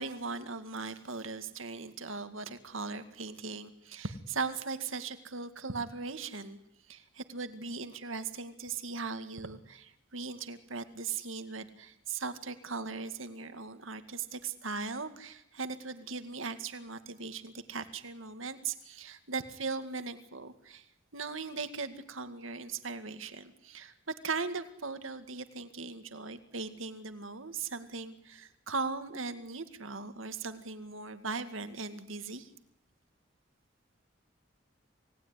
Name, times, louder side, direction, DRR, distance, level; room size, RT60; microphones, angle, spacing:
voice 1, 0.0-6.6 6.9-20.9 21.1-23.9 24.2-32.5, right 4 dB, 85° right, 9 dB, 2.1 m, -39 dB
28.5 x 19.0 x 9.9 m, 0.81 s
head